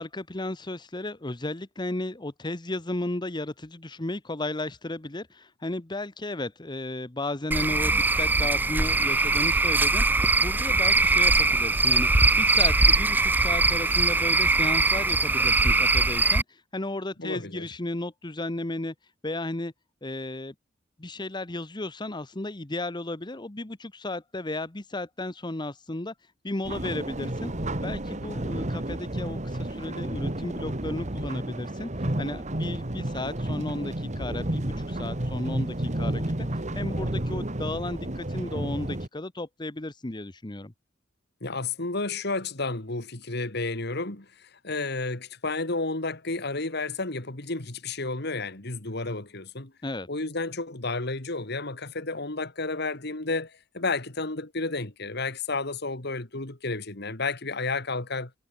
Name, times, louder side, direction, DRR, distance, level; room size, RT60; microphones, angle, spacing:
voice 1, 0.0-18.9 19.2-19.7 20.0-20.5 21.0-26.1 26.4-27.5 27.8-40.7 49.8-50.1, left 2 dB, 25° left, 1.1 m, -34 dB
Cricket / Frog, 7.5-16.4, right 3 dB, 10° right, 0.4 m, -22 dB
voice 2, 17.2-17.7 41.4-49.7 50.1-58.3, left 3 dB, 60° left, 2.6 m, -31 dB
sound 1, 26.6-39.1, right 1 dB, 40° right, 2.1 m, -31 dB
head